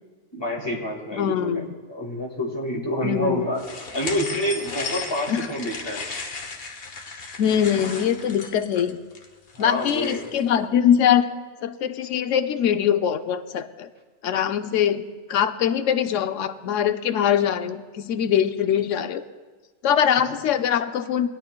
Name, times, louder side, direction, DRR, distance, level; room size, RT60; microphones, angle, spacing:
voice 1, 0.3-1.6 1.9-3.6 3.9-6.0 9.5-10.2, equal, 20° left, -2 dB, 1.9 m, -27 dB
voice 2, 1.1-1.7 3.0-3.5 5.3-5.5 7.4-9.0 9.6-11.3 11.6-13.9 14.2-15.0 15.3-19.2 19.8-21.3, left 9 dB, 85° left, 10 dB, 0.9 m, -22 dB
sound 1, 3.6-10.4, left 4 dB, 55° left, 1.2 m, -35 dB
20.0 x 10.5 x 2.2 m, 1.3 s
omnidirectional pair, 1.2 m